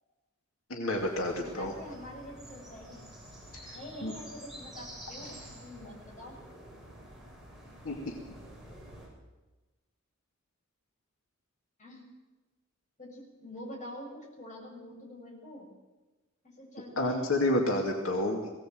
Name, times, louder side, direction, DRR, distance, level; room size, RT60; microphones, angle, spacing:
voice 1, 0.7-1.7 3.6-3.8 4.0-4.1 7.8-8.2 17.0-18.5, left 1 dB, 85° left, 0 dB, 2.8 m, -29 dB
sound 1, 0.9-9.1, right 1 dB, ahead, 7.1 m, -49 dB
voice 2, 1.4-3.1 3.7-6.3 11.8-12.0 13.0-15.7 16.6-17.4, equal, 40° left, -1 dB, 7.7 m, -46 dB
22.0 x 17.5 x 8.0 m, 1.2 s
head